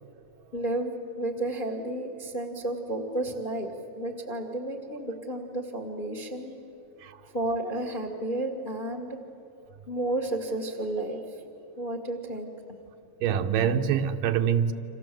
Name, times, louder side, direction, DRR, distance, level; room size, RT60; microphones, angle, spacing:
voice 1, 0.5-6.6 7.3-9.2 9.9-11.4 11.8-12.5, right 1 dB, 25° left, 4 dB, 1.2 m, -32 dB
voice 2, 13.2-14.7, right 8 dB, 75° right, 7 dB, 2.5 m, -25 dB
29.0 x 26.5 x 7.7 m, 2.9 s
omnidirectional pair, 4.1 m